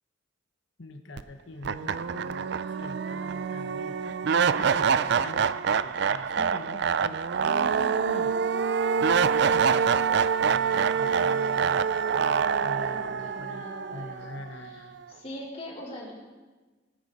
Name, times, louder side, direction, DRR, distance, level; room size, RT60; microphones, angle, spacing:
voice 1, 0.8-4.2 4.6-8.3 9.5-9.9 10.4-15.0, left 2 dB, 65° left, 7 dB, 1.0 m, -44 dB
sound 1, 1.2-1.3 1.6-14.7, right 6 dB, 55° right, 0.4 m, -26 dB
voice 2, 12.5-14.3 14.6-14.8 15.1-16.1, left 1 dB, 30° left, -5 dB, 3.7 m, -42 dB
20.0 x 9.5 x 4.1 m, 1.3 s
head